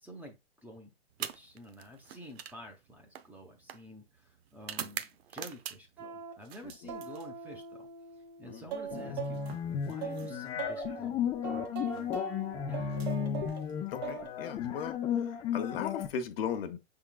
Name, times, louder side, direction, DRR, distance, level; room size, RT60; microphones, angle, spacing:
voice 1, 0.0-0.9 1.2-7.9 8.4-9.4 9.7-12.2 12.7-12.8, equal, 5° right, 0.8 m, -50 dB
sound 1, 1.1-6.0 6.4-7.7 8.9-10.7 11.8-12.0 12.8-14.0, right 10 dB, 75° right, 0.7 m, -45 dB
sound 2, 6.0-6.3 6.9-9.5 10.0-11.1 11.4-13.6 14.0-14.3 14.6-14.7, right 6 dB, 40° right, 1.4 m, -41 dB
sound 3, 8.9-16.1, left 8 dB, 15° left, 0.4 m, -34 dB
voice 2, 13.9-15.0 15.5-16.8, left 7 dB, 65° left, 1.0 m, -36 dB
5.7 x 3.7 x 2.3 m
hypercardioid pair, 140°, 31 cm